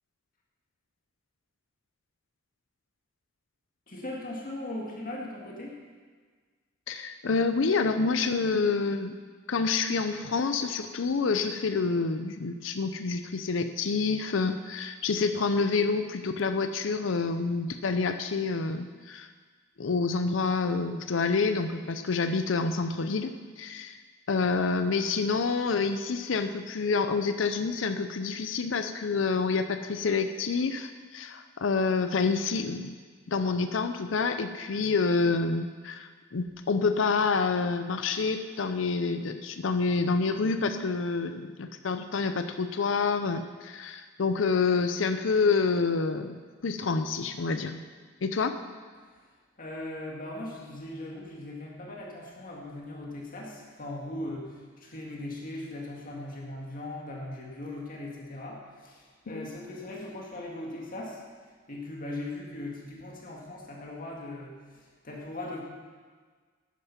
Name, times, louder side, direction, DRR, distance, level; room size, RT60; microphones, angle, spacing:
voice 1, 3.9-5.8 49.0-49.3 49.6-65.6, left 1 dB, 45° left, -2 dB, 2.0 m, -39 dB
voice 2, 6.9-9.1 9.5-19.3 19.8-24.0 24.3-33.0 33.3-47.8 48.2-48.6 59.3-59.5, left 4 dB, 75° left, 9 dB, 0.6 m, -28 dB
11.0 x 9.4 x 5.9 m, 1.5 s
head